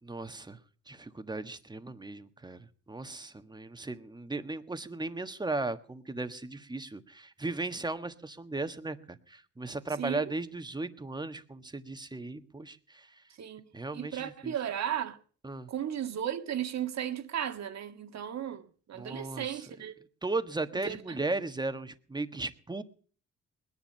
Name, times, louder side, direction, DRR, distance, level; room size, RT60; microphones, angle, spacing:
voice 1, 0.1-0.6 0.9-13.1 13.7-14.5 15.4-15.7 19.0-19.5 20.2-22.8, right 2 dB, 15° right, 1.5 m, -36 dB
voice 2, 10.0-10.4 13.4-13.6 13.9-15.2 15.7-19.9 20.7-21.2, right 10 dB, 60° right, 1.9 m, -35 dB
20.5 x 10.5 x 5.6 m
cardioid pair, 90°, 30 cm